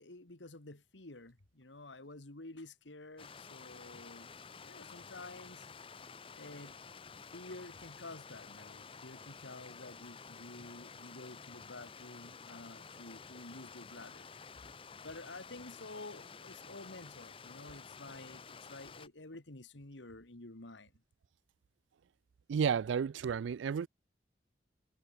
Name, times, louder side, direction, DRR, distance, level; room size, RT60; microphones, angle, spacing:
voice 1, 0.0-4.3 4.6-5.7 6.4-6.8 7.3-14.3 15.0-20.9, left 2 dB, 85° left, 2.1 m, -50 dB
Stream, 3.2-19.1, left 5 dB, 30° left, 0.7 m, -51 dB
voice 2, 22.5-23.9, right 7 dB, 90° right, 0.4 m, -32 dB
head